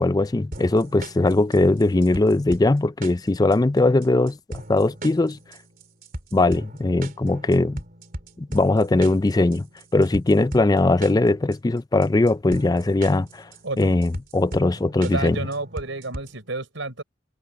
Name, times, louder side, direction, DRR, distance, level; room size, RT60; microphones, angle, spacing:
voice 1, 0.0-5.4 6.3-7.8 8.4-9.7 9.9-13.5 13.8-15.5, left 2 dB, 20° left, 0.4 m, -20 dB
sound 1, 0.5-16.5, right 1 dB, 45° right, 3.6 m, -39 dB
voice 2, 15.0-17.0, right 2 dB, 80° right, 4.5 m, -30 dB
head